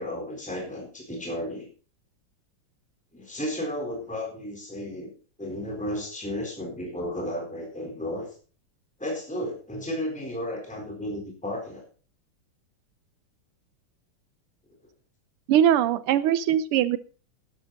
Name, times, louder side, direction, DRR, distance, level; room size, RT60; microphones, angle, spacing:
voice 1, 0.0-1.7 3.1-5.1 5.4-8.3 9.0-11.8, left 1 dB, 5° left, 0 dB, 4.0 m, -33 dB
voice 2, 15.5-17.0, right 10 dB, 90° right, 14 dB, 1.7 m, -21 dB
12.5 x 11.5 x 4.1 m, 0.38 s
omnidirectional pair, 2.4 m